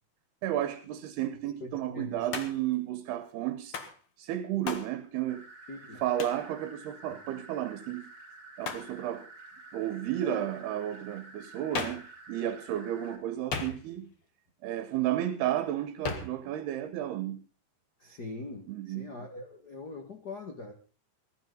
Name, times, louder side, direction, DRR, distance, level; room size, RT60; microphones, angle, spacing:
voice 1, 0.4-3.8 4.2-5.4 6.0-8.1 8.6-9.3 9.7-14.1 14.6-17.4 18.7-19.1, right 12 dB, 80° right, 3.1 m, -32 dB
voice 2, 1.6-2.3 5.7-6.0 10.2-10.4 18.0-20.7, left 2 dB, 65° left, 0.9 m, -42 dB
Hands, 2.3-2.7 3.7-4.0 4.7-4.9 6.2-6.5 8.6-8.9 11.7-12.1 13.5-14.1 16.0-16.4, left 5 dB, 45° left, 1.9 m, -36 dB
sound 1, 5.3-13.2, right 3 dB, 25° right, 4.0 m, -50 dB
20.5 x 12.5 x 3.9 m
omnidirectional pair, 4.7 m